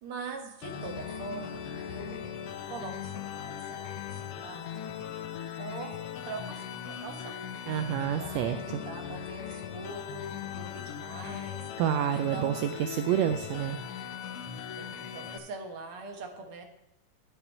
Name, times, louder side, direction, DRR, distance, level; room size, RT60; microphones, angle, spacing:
voice 1, 0.0-2.2 2.7-4.7 5.6-6.0 6.3-7.4 7.8-11.7 12.1-12.6 14.8-16.6, right 4 dB, 60° right, 3 dB, 1.6 m, -43 dB
sound 1, 0.6-15.4, left 8 dB, 75° left, 1.4 m, -39 dB
voice 2, 7.7-8.8 11.8-13.8, right 10 dB, 85° right, 8 dB, 1.5 m, -29 dB
11.0 x 5.9 x 5.4 m, 0.86 s
omnidirectional pair, 3.5 m